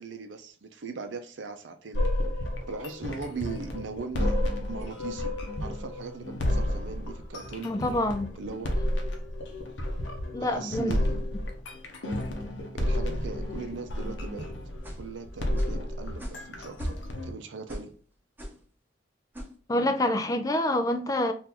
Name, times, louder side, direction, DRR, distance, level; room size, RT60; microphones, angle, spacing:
voice 1, 0.0-2.1 2.7-4.4 4.7-7.7 8.4-8.7 10.4-11.3 12.7-14.5 15.0-17.0 17.2-17.9, right 4 dB, 80° right, 0.5 m, -39 dB
sound 1, 1.9-17.3, left 1 dB, 80° left, 0.7 m, -31 dB
voice 2, 7.6-8.3 10.3-10.9 19.7-21.3, left 1 dB, 20° left, 0.3 m, -26 dB
sound 2, 14.8-15.1 15.6-15.8 16.2-16.5 16.7-17.2 17.7-17.9 18.4-18.6 19.3-19.5, equal, 10° right, 0.8 m, -40 dB
2.9 x 2.5 x 3.7 m
head